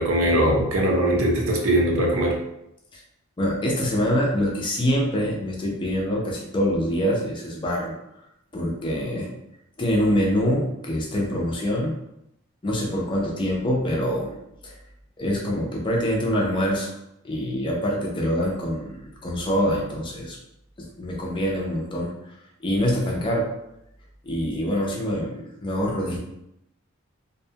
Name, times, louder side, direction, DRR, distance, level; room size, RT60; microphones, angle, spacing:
voice 1, 0.0-2.4, right 1 dB, 75° right, 0 dB, 0.6 m, -21 dB
voice 2, 3.4-7.9 8.5-9.3 9.8-11.9 12.6-14.4 14.6-14.7 15.2-16.9 17.2-20.4 21.0-22.1 22.6-23.5 24.2-26.2, equal, 25° left, -2 dB, 0.5 m, -25 dB
2.6 x 2.2 x 2.7 m, 0.83 s
head